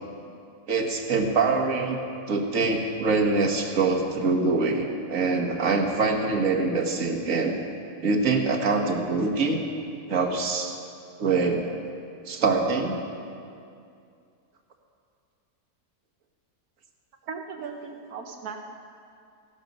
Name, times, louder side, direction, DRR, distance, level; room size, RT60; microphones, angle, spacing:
voice 1, 0.7-2.0 2.3-7.6 8.0-9.6 10.1-10.8 11.2-11.7 12.3-13.0, right 3 dB, 65° right, 3 dB, 1.6 m, -24 dB
voice 2, 17.3-18.6, right 5 dB, 80° right, 2 dB, 1.4 m, -37 dB
15.5 x 12.0 x 5.3 m, 2.4 s
omnidirectional pair, 1.6 m